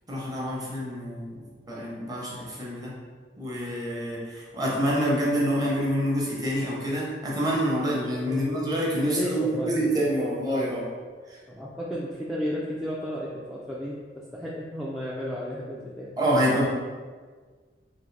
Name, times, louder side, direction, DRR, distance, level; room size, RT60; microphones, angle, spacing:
voice 1, 0.1-3.0 3.4-10.9 11.3-11.4 16.2-16.7, equal, 20° right, -4 dB, 0.7 m, -27 dB
voice 2, 8.3-8.6 9.0-9.7 11.5-13.9 14.3-16.1, equal, ahead, -7 dB, 0.3 m, -32 dB
3.7 x 2.7 x 3.2 m, 1.5 s
head